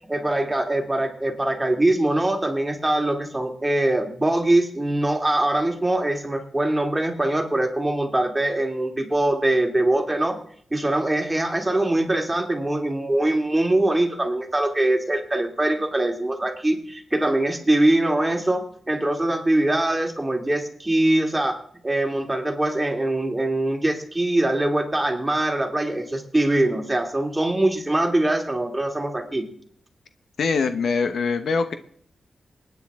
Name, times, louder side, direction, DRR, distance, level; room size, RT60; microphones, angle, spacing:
voice 1, 0.1-10.4 10.7-29.5, right 1 dB, 15° right, 3 dB, 2.5 m, -23 dB
voice 2, 30.4-31.7, left 5 dB, 80° left, 9 dB, 1.0 m, -23 dB
27.0 x 9.7 x 3.6 m, 0.62 s
wide cardioid pair, 90°, 0 cm